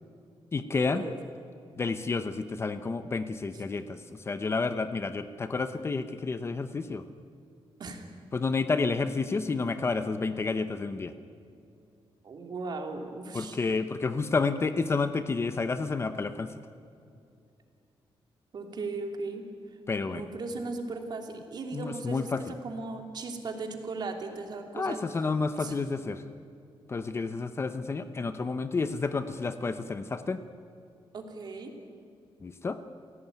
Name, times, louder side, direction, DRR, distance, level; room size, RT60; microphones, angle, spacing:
voice 1, 0.5-1.0 1.8-7.0 8.3-11.1 13.3-16.5 19.9-20.2 21.7-22.4 24.7-26.2 26.9-30.4 32.4-32.8, left 4 dB, 25° left, 10 dB, 0.9 m, -30 dB
voice 2, 12.2-13.6 18.5-19.4 20.1-25.2 25.6-25.7 31.1-31.7, right 3 dB, 50° right, 4 dB, 3.0 m, -37 dB
28.5 x 17.0 x 9.3 m, 2.5 s
wide cardioid pair, 175°, 10 cm